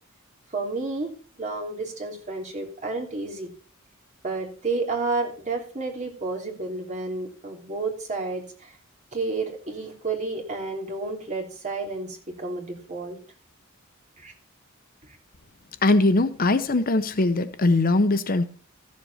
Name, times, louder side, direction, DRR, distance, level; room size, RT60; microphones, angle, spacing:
voice 1, 0.5-1.1 1.4-3.5 4.2-8.7 9.1-13.2 14.2-14.3 15.0-15.2, right 3 dB, 35° right, 3.1 m, -31 dB
voice 2, 15.8-18.5, left 2 dB, 45° left, 0.8 m, -21 dB
14.0 x 7.5 x 4.2 m
head